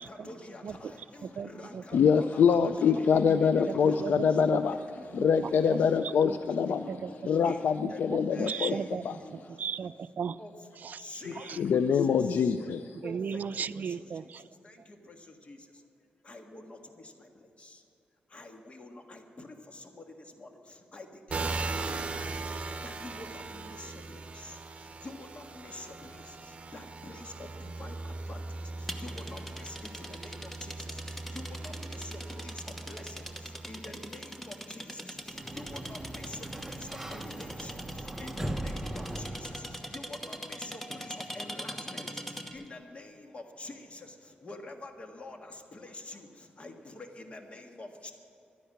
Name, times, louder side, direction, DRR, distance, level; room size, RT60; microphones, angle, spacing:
voice 1, 0.0-4.1 4.9-5.1 5.6-5.7 6.2-6.4 7.1-8.0 8.3-8.8 10.4-10.5 11.0-11.8 13.0-13.4 15.5-15.6 16.3-16.8 18.3-19.5 20.4-20.5 20.9-21.1 21.3-22.1 22.8-23.9 25.0-26.1 26.7-27.2 27.8-27.9 28.3-28.4 29.0-29.7 30.1-30.3 30.6-30.7 31.3-32.1 32.4-32.5 32.9-33.0 33.7-34.8 35.5-37.7 38.2-39.3 39.9-42.1 42.5-43.7 44.4-45.4 45.7-46.3 46.6-48.1, left 2 dB, 40° left, 4 dB, 1.6 m, -46 dB
voice 2, 1.2-1.8 2.9-3.0 3.3-3.4 3.7-4.6 5.2-5.8 6.0-7.1 7.8-10.4 10.8-11.6 13.0-14.5, right 6 dB, 60° right, 15 dB, 0.4 m, -37 dB
voice 3, 1.9-4.8 5.1-6.9 7.2-8.8 9.0-9.1 11.6-13.0, left 6 dB, 75° left, 10 dB, 0.4 m, -25 dB
sound 1, 21.3-34.7 35.4-38.3, right 3 dB, 40° right, 1.1 m, -40 dB
sound 2, 28.9-42.7, equal, 5° left, 1.1 m, -42 dB
Sliding door, 35.2-40.0, right 1 dB, 10° right, 0.9 m, -39 dB
12.5 x 10.5 x 8.7 m, 2.7 s
cardioid pair, 95°, 3 cm